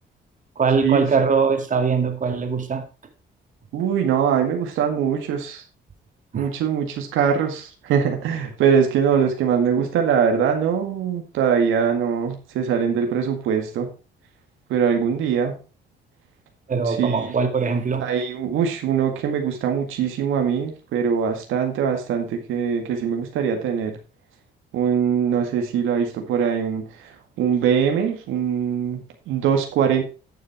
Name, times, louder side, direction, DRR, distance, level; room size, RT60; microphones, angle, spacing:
voice 1, 0.6-2.9 6.3-6.5 16.7-18.1, right 5 dB, 40° right, 5 dB, 2.3 m, -21 dB
voice 2, 3.7-5.6 6.3-13.9 14.7-15.6 16.9-17.3 18.0-24.0 24.7-26.8 27.4-30.0, right 7 dB, 90° right, 4 dB, 1.9 m, -22 dB
11.0 x 6.7 x 4.5 m, 0.33 s
cardioid pair, 90°, 20 cm